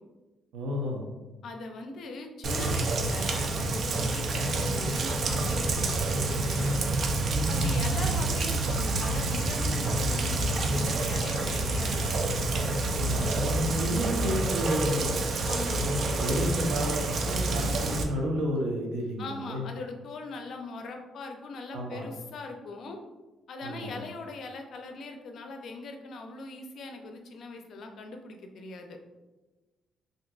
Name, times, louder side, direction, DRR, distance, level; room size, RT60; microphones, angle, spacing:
voice 1, 0.5-1.1 7.3-7.6 13.0-15.2 15.8-19.7 21.7-22.1 23.6-24.0, equal, 90° right, 0 dB, 0.7 m, -31 dB
voice 2, 1.4-6.8 7.5-12.2 15.4-15.9 19.2-23.0 23.5-29.0, left 3 dB, 65° left, 4 dB, 0.4 m, -40 dB
Rain, 2.4-18.0, right 2 dB, 55° right, 0.4 m, -28 dB
3.5 x 2.6 x 2.3 m, 1.1 s
cardioid pair, 90°, 0 cm